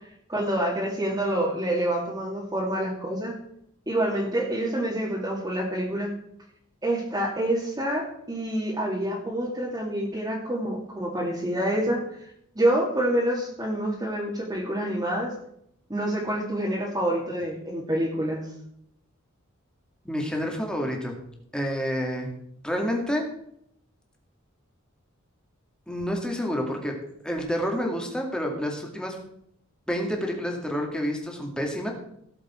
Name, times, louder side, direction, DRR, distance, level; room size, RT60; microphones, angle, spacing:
voice 1, 0.3-3.3 3.9-6.1 6.8-12.0 12.5-15.3 15.9-18.4, right 1 dB, 20° right, -6 dB, 2.4 m, -27 dB
voice 2, 20.0-21.2 21.5-22.3 22.6-23.3 25.9-27.0 27.2-29.2 29.9-31.9, equal, 5° left, 1 dB, 2.3 m, -28 dB
17.5 x 7.4 x 4.5 m, 0.73 s
head